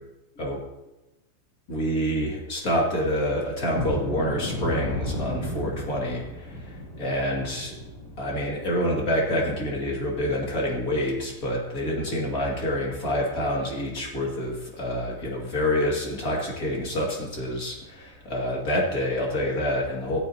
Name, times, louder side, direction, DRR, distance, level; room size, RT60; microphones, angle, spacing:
voice 1, 1.7-7.8 8.2-20.2, equal, 35° left, -2 dB, 1.5 m, -27 dB
sound 1, 3.7-10.4 10.8-10.9 11.4-11.5 12.0-12.2, left 1 dB, 80° left, 5.6 m, -35 dB
16.0 x 13.0 x 2.8 m, 0.99 s
omnidirectional pair, 4.9 m